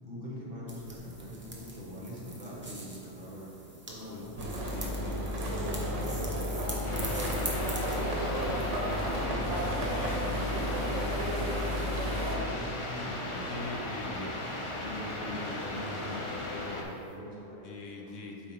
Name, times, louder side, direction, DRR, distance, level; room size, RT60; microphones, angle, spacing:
voice 1, 0.0-3.5 3.9-10.0 10.3-13.5 13.9-14.3 14.8-18.1, left 1 dB, 45° right, -5 dB, 1.6 m, -43 dB
sound 1, 0.7-9.3, right 1 dB, 10° right, 0.8 m, -43 dB
voice 2, 4.1-4.5 4.7-5.2 9.9-10.6 13.5-14.3 17.6-18.5, left 2 dB, 75° left, 1 dB, 1.1 m, -43 dB
sound 2, 4.4-12.4, equal, 70° right, 1.3 m, -32 dB
sound 3, 6.8-16.8, left 1 dB, 35° left, 0.5 m, -36 dB
8.2 x 4.4 x 3.7 m, 2.7 s
omnidirectional pair, 1.4 m